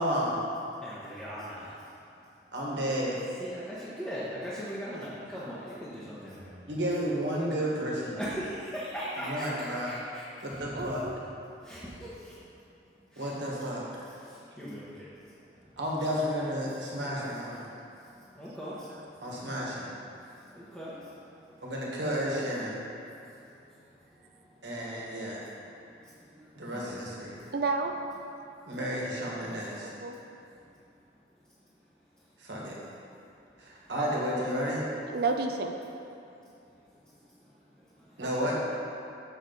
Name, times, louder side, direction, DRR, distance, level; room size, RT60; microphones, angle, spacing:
voice 1, 0.0-0.4 2.5-3.2 6.7-8.2 9.2-9.9 10.4-11.1 13.2-14.0 15.8-17.7 19.2-19.9 21.6-22.8 24.6-25.4 26.5-27.4 28.6-29.9 32.4-32.8 33.6-34.8 38.2-38.6, equal, 85° right, -4 dB, 1.5 m, -32 dB
voice 2, 0.8-1.4 3.4-6.6 8.2-10.9 11.6-12.4 13.1-13.3 14.2-15.1 15.6-15.7 17.7-17.8 18.3-19.3 20.1-21.6 23.4-23.6 24.4-24.9 25.1-25.5 25.8-27.0 27.3-27.5 37.8-38.2, equal, 5° left, -11 dB, 0.9 m, -41 dB
voice 3, 10.7-11.2 27.5-27.9 29.8-30.2 35.1-35.7 38.2-38.5, right 3 dB, 55° right, 4 dB, 0.5 m, -31 dB
7.1 x 6.5 x 4.0 m, 2.6 s
head